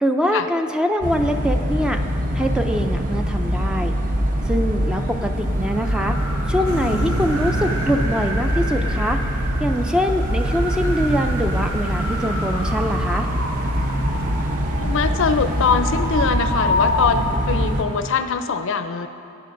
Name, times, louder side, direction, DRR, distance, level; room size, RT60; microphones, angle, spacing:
voice 1, 0.0-2.0 2.3-3.9 4.5-6.2 6.5-9.2 9.6-13.3, equal, 5° right, 5 dB, 0.3 m, -23 dB
sound 1, 1.0-17.8, equal, 40° right, 0.8 m, -24 dB
sound 2, 5.4-17.5, left 1 dB, 70° right, 1.6 m, -29 dB
sound 3, 6.7-18.2, right 3 dB, 85° right, 0.6 m, -33 dB
voice 2, 14.8-19.1, left 5 dB, 60° left, 9 dB, 0.5 m, -22 dB
17.5 x 9.9 x 2.6 m, 2.8 s
head